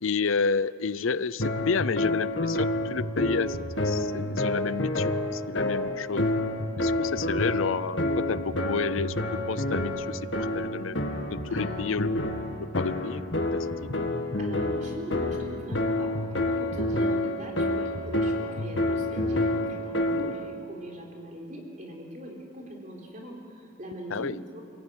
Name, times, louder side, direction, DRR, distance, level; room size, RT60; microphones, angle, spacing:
voice 1, 0.0-3.6 3.8-6.3 6.8-11.0 11.3-12.3 12.6-13.2 13.5-13.7 20.2-20.3 24.1-24.4, left 5 dB, 85° left, 18 dB, 0.6 m, -30 dB
sound 1, 1.4-20.5, left 1 dB, 65° left, 2.3 m, -28 dB
voice 2, 14.4-16.1 16.4-24.6, right 1 dB, 40° right, 0 dB, 4.3 m, -41 dB
28.5 x 16.5 x 9.1 m, 2.3 s
head